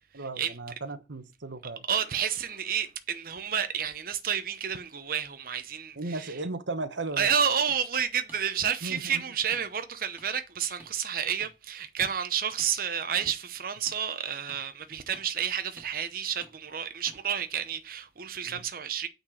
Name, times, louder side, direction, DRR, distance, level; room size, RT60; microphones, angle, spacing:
voice 1, 0.1-1.8 6.0-7.3 8.8-9.2 18.4-18.6, right 2 dB, 90° right, 1.2 m, -36 dB
voice 2, 1.9-6.4 7.2-19.1, right 8 dB, 50° right, 0.8 m, -30 dB
sound 1, 7.7-7.8 8.3-8.4 8.9-9.0 9.5-9.7 10.2-10.3 10.8-10.9 11.4-11.5 12.0-12.1 12.6-12.7 13.2-13.3 13.9-14.0 14.5-14.6 15.1-15.3 15.8-15.9 16.4-16.5 17.1-17.2, right 1 dB, 10° right, 2.0 m, -50 dB
8.9 x 4.4 x 6.4 m
head